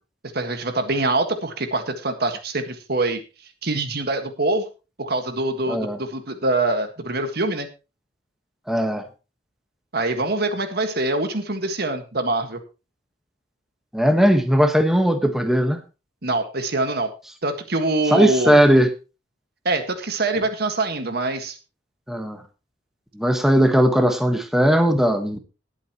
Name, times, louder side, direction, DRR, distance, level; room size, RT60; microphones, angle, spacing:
voice 1, 0.3-3.2 3.6-4.6 5.0-7.7 9.9-12.6 16.2-17.1 17.4-18.6 19.6-21.6, right 2 dB, 60° right, 7 dB, 1.7 m, -24 dB
voice 2, 5.7-6.0 8.7-9.0 13.9-15.8 18.1-18.9 22.1-22.4 23.1-25.4, equal, ahead, 6 dB, 1.4 m, -18 dB
19.5 x 8.3 x 3.0 m, 0.31 s
head